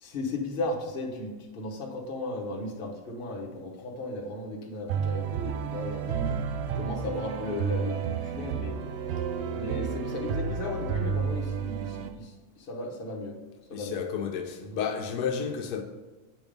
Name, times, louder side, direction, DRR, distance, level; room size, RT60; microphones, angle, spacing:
voice 1, 0.0-6.4 6.7-8.8 9.5-13.4 13.7-14.0 14.6-14.8, left 2 dB, 40° left, 1.0 m, -35 dB
sound 1, 4.9-12.1, right 7 dB, 80° right, 0.5 m, -31 dB
voice 2, 13.7-15.8, left 6 dB, 85° left, 1.2 m, -31 dB
8.4 x 3.5 x 5.1 m
omnidirectional pair, 1.7 m